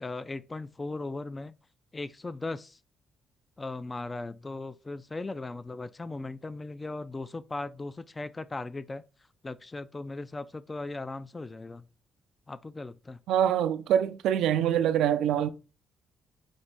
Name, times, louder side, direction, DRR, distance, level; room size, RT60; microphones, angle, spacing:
voice 1, 0.0-1.5 1.9-2.8 3.6-9.0 9.4-11.9 12.5-13.2, left 2 dB, 25° left, 0.3 m, -38 dB
voice 2, 13.3-15.5, right 10 dB, 85° right, 0.4 m, -25 dB
5.2 x 2.6 x 3.3 m
cardioid pair, 90°, 0 cm